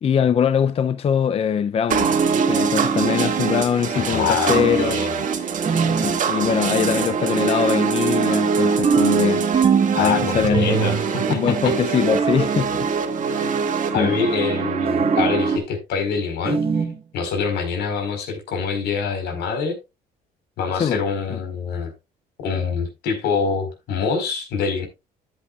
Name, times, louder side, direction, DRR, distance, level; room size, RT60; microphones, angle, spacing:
voice 1, 0.0-5.0 5.7-9.5 10.0-10.9 11.3-12.9 13.2-13.6 13.9-14.1 20.7-21.0 21.3-21.4, left 8 dB, 35° left, 0.5 m, -22 dB
sound 1, 1.9-15.6, right 6 dB, 50° right, 2.1 m, -23 dB
voice 2, 3.9-5.2 9.9-11.5 13.9-16.9 17.1-19.8 20.6-21.9 22.4-24.9, left 5 dB, 80° left, 4.6 m, -25 dB
sound 2, 4.5-5.0 5.7-6.2 8.8-10.0 10.4-11.1 12.0-12.5 14.8-15.4 16.5-17.0, right 5 dB, 35° right, 1.4 m, -22 dB
13.5 x 8.4 x 2.4 m
cardioid pair, 110°, 17 cm